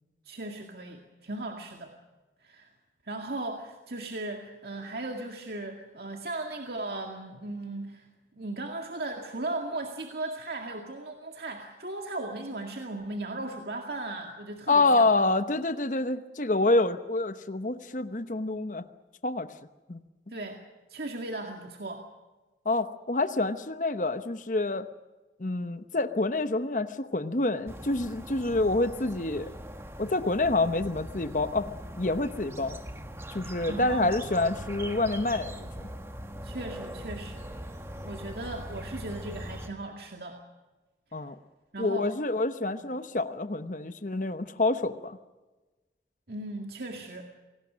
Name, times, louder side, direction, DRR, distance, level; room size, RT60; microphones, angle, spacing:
voice 1, 0.3-1.9 2.4-2.7 3.0-8.1 8.3-15.1 20.3-20.6 20.9-22.0 33.7-34.2 36.4-37.5 38.0-40.4 41.7-42.1 42.8-42.9 46.3-47.2, right 2 dB, 65° right, 2 dB, 2.1 m, -37 dB
voice 2, 14.7-18.9 19.2-19.5 19.9-20.0 22.6-24.9 25.4-29.5 30.0-31.7 32.0-32.8 33.3-35.9 41.1-41.3 41.8-45.2, left 2 dB, 45° left, 10 dB, 1.0 m, -27 dB
sound 1, 27.7-39.7, equal, 15° right, 1.5 m, -41 dB
28.5 x 19.0 x 6.3 m, 1.2 s
head